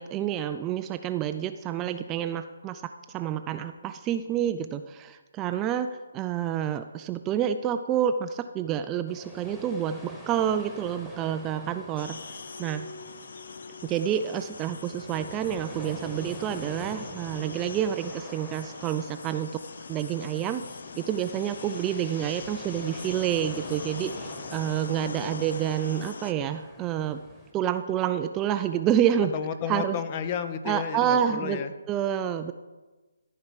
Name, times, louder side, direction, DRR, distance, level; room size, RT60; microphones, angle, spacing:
voice 1, 0.0-12.2 12.6-12.9 13.8-19.5 19.9-20.6 21.0-27.2 27.5-29.3 29.7-30.0 30.7-31.6 31.9-32.5, right 10 dB, 20° right, 9 dB, 0.4 m, -28 dB
sound 1, 9.1-27.5, equal, 5° left, 1.5 m, -45 dB
sound 2, 12.0-26.3, left 5 dB, 60° left, 0.4 m, -42 dB
sound 3, 12.1-17.9, left 2 dB, 80° left, 3.7 m, -47 dB
voice 2, 29.3-31.7, left 7 dB, 30° left, 10 dB, 0.7 m, -32 dB
14.0 x 4.7 x 5.8 m, 1.2 s
figure-of-eight pair, 145°, 0 cm